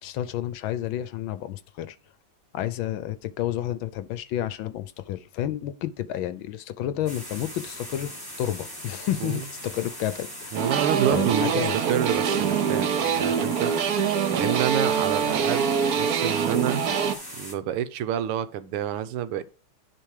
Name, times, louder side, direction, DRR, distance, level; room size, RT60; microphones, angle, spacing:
voice 1, 0.0-2.0 2.5-10.7 11.1-11.8, left 12 dB, 75° left, 1.2 m, -30 dB
sound 1, 7.1-17.6, equal, 10° left, 2.0 m, -40 dB
sound 2, 10.5-17.1, right 7 dB, 65° right, 0.9 m, -24 dB
voice 2, 10.5-13.7 14.3-16.8 17.4-19.4, right 10 dB, 85° right, 1.6 m, -28 dB
10.5 x 3.6 x 4.7 m
omnidirectional pair, 2.4 m